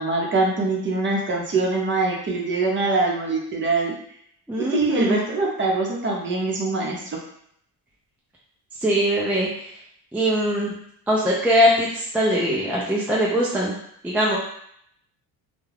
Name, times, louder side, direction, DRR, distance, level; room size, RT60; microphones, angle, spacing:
voice 1, 0.0-3.9 4.6-7.2, right 3 dB, 30° right, -2 dB, 0.7 m, -23 dB
voice 2, 4.5-5.2 8.8-9.8 10.1-10.7 11.1-13.7 14.0-14.4, equal, 5° right, -5 dB, 0.3 m, -21 dB
2.3 x 2.2 x 3.3 m, 0.69 s
cardioid pair, 110°, 42 cm